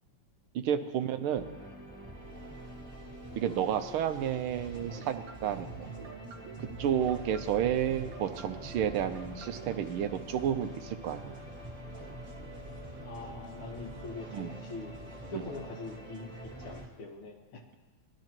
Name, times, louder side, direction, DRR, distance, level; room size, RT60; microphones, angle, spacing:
voice 1, 0.5-1.6 3.4-5.7 6.8-11.4 14.3-14.5 15.3-15.4, right 9 dB, 80° right, 9 dB, 1.6 m, -31 dB
sound 1, 1.4-16.9, right 1 dB, 15° right, 2.0 m, -46 dB
sound 2, 4.5-9.7, right 5 dB, 65° right, 1.7 m, -47 dB
sound 3, 6.9-16.0, equal, 45° right, 0.6 m, -50 dB
voice 2, 13.0-14.9 15.3-16.3 16.6-17.6, left 3 dB, 75° left, 2 dB, 2.3 m, -43 dB
20.5 x 12.0 x 3.0 m, 1.2 s
omnidirectional pair, 2.4 m